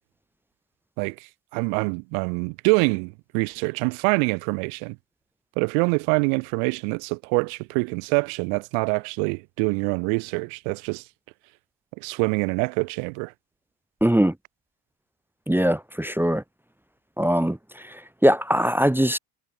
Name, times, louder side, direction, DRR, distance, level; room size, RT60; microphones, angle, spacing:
voice 1, 1.5-5.0 5.6-11.0 12.0-13.3, right 40 dB or more, 90° right, 1.4 m, -25 dB
voice 2, 14.0-14.3 15.5-16.4 17.2-17.6 17.9-19.2, equal, 5° right, 0.9 m, -21 dB
cardioid pair, 110°, 49 cm